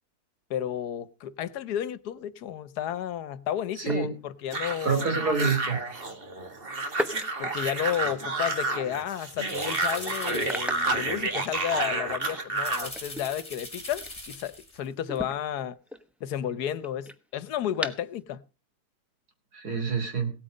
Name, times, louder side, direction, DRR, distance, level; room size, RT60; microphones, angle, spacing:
voice 1, 0.5-5.2 7.4-15.8 16.2-18.4, left 10 dB, 80° left, 1.4 m, -32 dB
sound 1, 2.4-2.6 3.8-4.7 6.9-8.5 8.9-9.1 9.5-9.6 10.4-11.9 12.2-14.7 15.0-18.2, left 1 dB, ahead, 0.7 m, -39 dB
voice 2, 3.8-4.1 4.8-5.8 19.5-20.3, right 5 dB, 80° right, 3.6 m, -27 dB
sound 2, 4.5-12.9, right 3 dB, 35° right, 2.0 m, -30 dB
sound 3, 7.1-7.2 7.9-8.3 9.2-11.2 12.5-14.9 15.2-15.3, left 2 dB, 20° left, 3.1 m, -42 dB
17.5 x 8.9 x 5.3 m
omnidirectional pair, 1.7 m